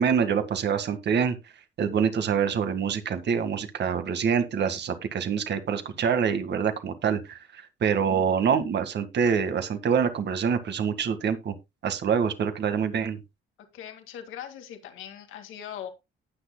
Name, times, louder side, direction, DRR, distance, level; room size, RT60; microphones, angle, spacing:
voice 1, 0.0-1.4 1.8-11.5 11.8-13.2, right 7 dB, 60° right, 9 dB, 1.8 m, -26 dB
voice 2, 13.7-15.9, left 9 dB, 90° left, 6 dB, 2.0 m, -40 dB
18.5 x 6.5 x 2.2 m, 0.23 s
cardioid pair, 90°, 20 cm